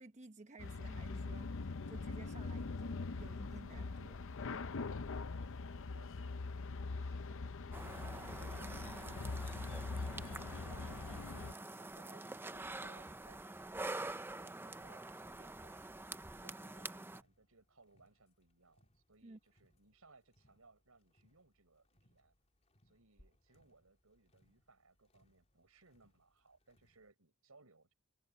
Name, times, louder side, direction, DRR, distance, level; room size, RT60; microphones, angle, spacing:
voice 1, 0.0-4.2 19.2-19.4, right 3 dB, 35° right, 1.0 m, -56 dB
sound 1, 0.6-11.5, left 3 dB, 65° left, 0.7 m, -43 dB
voice 2, 5.3-16.0 16.4-22.3 22.8-27.9, right 3 dB, 80° right, 5.2 m, -66 dB
sound 2, 7.7-17.2, right 2 dB, 10° right, 0.6 m, -46 dB
sound 3, 13.8-27.1, equal, 30° left, 3.1 m, -75 dB
head